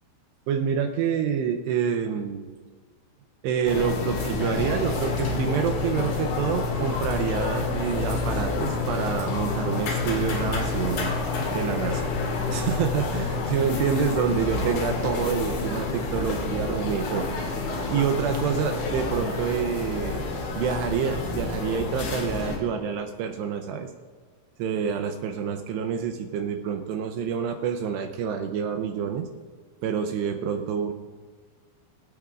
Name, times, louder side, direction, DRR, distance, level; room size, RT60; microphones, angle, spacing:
voice 1, 0.5-2.5 3.4-11.2 11.5-12.1 12.5-17.3 17.9-20.2 20.6-23.9 24.6-29.3 29.8-30.9, right 7 dB, 80° right, 5 dB, 2.7 m, -27 dB
sound 1, 3.7-22.6, left 3 dB, 70° left, 4.1 m, -28 dB
24.0 x 8.5 x 2.5 m, 1.5 s
omnidirectional pair, 5.2 m